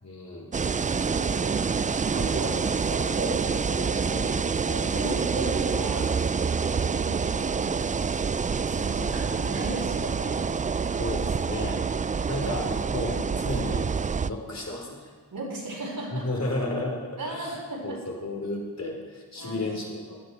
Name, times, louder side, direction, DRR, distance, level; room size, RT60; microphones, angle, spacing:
voice 1, 0.0-0.5 5.3-5.5 9.0-9.1 10.9-11.8 12.3-13.9 14.2-15.1 16.1-17.0 17.3-17.6 17.8-20.2, left 2 dB, 40° left, -1 dB, 4.2 m, -33 dB
sound 1, 0.5-14.3, right 5 dB, 20° right, 0.3 m, -27 dB
voice 2, 0.6-7.8 8.6-10.4 12.4-12.7 15.3-16.3 17.2-18.0 19.4-19.8, right 2 dB, 55° right, -4 dB, 5.0 m, -37 dB
15.5 x 10.0 x 4.8 m, 1.4 s
cardioid pair, 45°, 40 cm